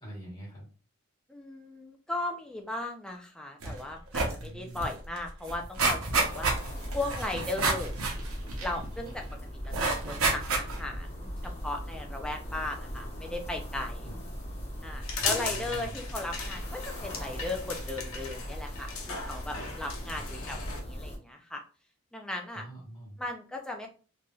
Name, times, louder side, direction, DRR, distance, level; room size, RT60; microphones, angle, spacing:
voice 1, 0.0-0.7 4.4-4.9 14.0-14.2 15.2-16.0 20.1-20.2 22.5-23.2, right 1 dB, 20° left, -5 dB, 1.2 m, -44 dB
voice 2, 1.3-6.5 6.9-7.9 8.6-9.2 9.5-9.7 10.1-14.1 14.8-21.6 22.1-22.6 23.2-23.9, left 2 dB, 5° left, 2 dB, 0.3 m, -37 dB
sound 1, 3.6-3.8 4.1-4.4 4.8-4.9 5.2-9.1 9.7-10.9 11.4-11.5, right 3 dB, 75° right, 0.7 m, -29 dB
sound 2, 6.1-21.2, equal, 50° left, 1.0 m, -40 dB
sound 3, 15.0-20.8, left 4 dB, 75° left, 0.6 m, -37 dB
3.0 x 2.6 x 2.3 m, 0.38 s
head